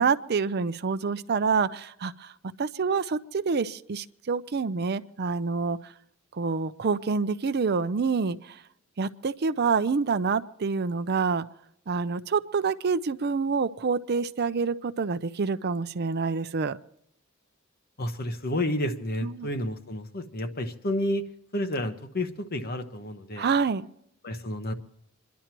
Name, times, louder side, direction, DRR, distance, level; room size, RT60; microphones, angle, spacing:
voice 1, 0.0-2.3 2.6-5.9 6.3-8.6 9.0-11.4 11.9-16.8 19.2-19.5 23.4-23.9, right 5 dB, 50° right, 13 dB, 0.5 m, -27 dB
voice 2, 18.0-21.2 21.5-23.5 24.2-24.7, left 1 dB, 50° left, 8 dB, 1.1 m, -30 dB
28.0 x 11.0 x 3.0 m, 0.77 s
head